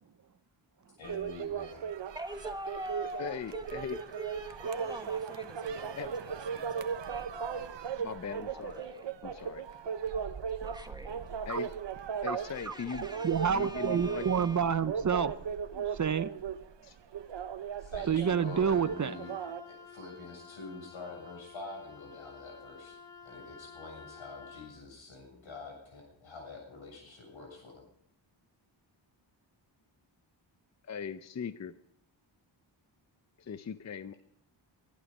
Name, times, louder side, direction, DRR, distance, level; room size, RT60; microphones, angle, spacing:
voice 1, 1.0-1.9 17.8-19.3 19.7-23.0 23.2-27.8, left 3 dB, 90° left, 1 dB, 7.3 m, -46 dB
sound 1, 1.0-19.6, right 7 dB, 65° right, 1.0 m, -37 dB
voice 2, 2.1-7.7 8.3-9.6 10.6-11.3 12.5-14.6, right 1 dB, 10° right, 6 dB, 1.5 m, -44 dB
voice 3, 3.2-4.0 4.6-4.8 5.9-6.1 8.0-8.8 9.2-9.6 11.5-11.7 12.2-13.1 13.5-14.3 16.8-17.0 30.8-31.7 33.4-34.1, left 6 dB, 35° left, 12 dB, 0.6 m, -39 dB
voice 4, 13.2-15.4 15.7-16.3 18.1-19.2, right 7 dB, 40° right, 15 dB, 0.6 m, -28 dB
Wind instrument woodwind instrument, 18.5-24.7, left 5 dB, 10° left, 2.9 m, -51 dB
22.5 x 12.0 x 5.4 m, 0.73 s
wide cardioid pair, 115°, 46 cm